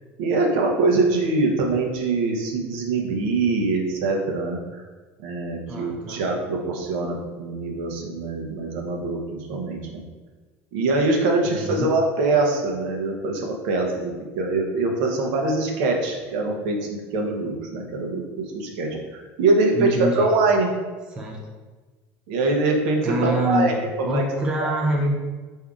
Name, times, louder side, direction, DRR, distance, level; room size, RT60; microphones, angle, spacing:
voice 1, 0.2-4.8 5.2-10.0 10.7-18.2 18.5-20.7 22.3-23.7 24.0-24.2, right 3 dB, 65° right, 1 dB, 0.7 m, -23 dB
voice 2, 5.7-6.2 11.4-11.9 19.7-20.3 21.1-21.4 23.0-25.1, right 1 dB, 15° right, -1 dB, 0.4 m, -25 dB
4.8 x 2.7 x 3.6 m, 1.3 s
cardioid pair, 180°, 6 cm